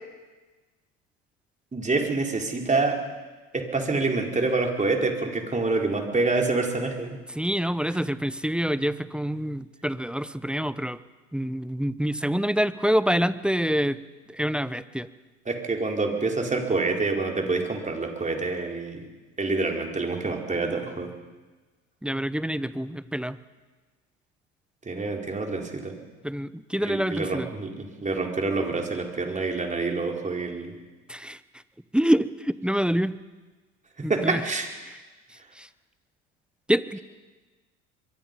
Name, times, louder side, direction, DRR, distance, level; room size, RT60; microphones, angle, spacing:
voice 1, 1.7-3.0 3.5-7.2 15.5-19.0 19.4-21.1 24.8-25.9 26.8-30.7 34.0-34.7, right 3 dB, 20° right, 2 dB, 4.4 m, -27 dB
voice 2, 7.3-11.0 11.3-14.0 14.3-15.1 22.0-23.4 26.2-27.5 31.1-31.4 31.9-33.2 34.0-34.5 34.9-35.0 35.3-35.7 36.7-37.0, equal, 5° right, 16 dB, 0.8 m, -26 dB
24.5 x 23.0 x 5.4 m, 1.3 s
hypercardioid pair, 70°, 38 cm